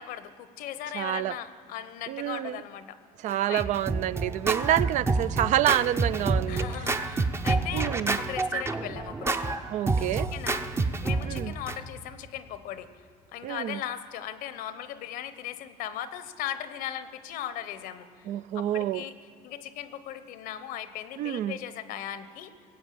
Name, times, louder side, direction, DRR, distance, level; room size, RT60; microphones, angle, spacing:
voice 1, 0.0-3.0 3.5-3.7 6.5-12.9 13.3-18.3 18.5-19.1 19.4-22.5, left 11 dB, 75° left, 13 dB, 0.9 m, -38 dB
voice 2, 0.9-1.4 2.1-2.6 3.2-6.7 7.7-8.2 9.7-10.3 11.3-11.5 13.4-13.8 18.3-19.0 21.2-21.6, right 12 dB, 55° right, 17 dB, 0.4 m, -28 dB
Scratching (performance technique), 3.3-11.8, right 3 dB, 15° right, 0.6 m, -28 dB
19.0 x 8.0 x 7.7 m, 2.5 s
cardioid pair, 110°, 15 cm